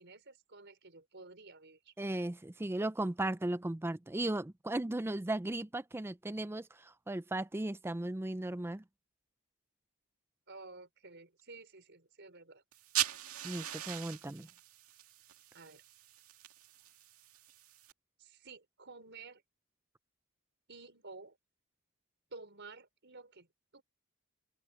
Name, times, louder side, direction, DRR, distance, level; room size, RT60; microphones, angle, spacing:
voice 1, 0.0-1.9 10.5-12.6 15.5-15.8 18.2-19.4 20.7-21.4 22.3-23.5 23.7-23.8, right 3 dB, 55° right, 5.1 m, -52 dB
voice 2, 2.0-8.8 13.4-14.5, right 1 dB, 10° right, 0.4 m, -36 dB
sound 1, 12.7-17.9, right 12 dB, 85° right, 2.1 m, -40 dB
open air
head